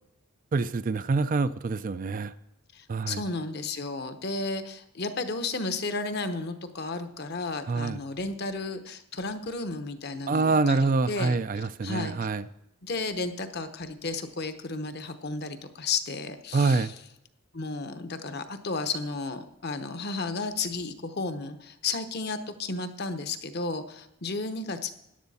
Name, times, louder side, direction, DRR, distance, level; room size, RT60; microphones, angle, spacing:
voice 1, 0.5-2.3 2.9-3.2 7.7-8.0 10.3-12.4 16.5-16.9, right 3 dB, 40° right, 0.3 m, -26 dB
voice 2, 2.7-12.2 12.8-16.9 17.5-24.9, left 3 dB, 50° left, 0.9 m, -33 dB
14.0 x 10.5 x 4.2 m
head